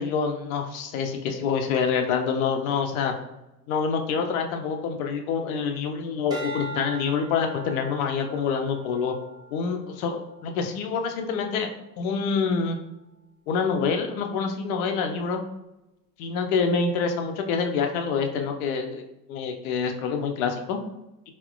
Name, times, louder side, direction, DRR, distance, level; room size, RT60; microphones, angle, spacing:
voice 1, 0.0-3.1 3.7-9.2 9.5-11.7 12.0-12.8 13.5-15.4 16.2-19.0 19.3-20.8, left 5 dB, 60° left, 5 dB, 0.5 m, -26 dB
sound 1, 6.3-10.7 11.3-11.7, right 1 dB, 10° right, 0.6 m, -41 dB
4.1 x 2.1 x 2.3 m, 0.95 s
figure-of-eight pair, 60°, 49 cm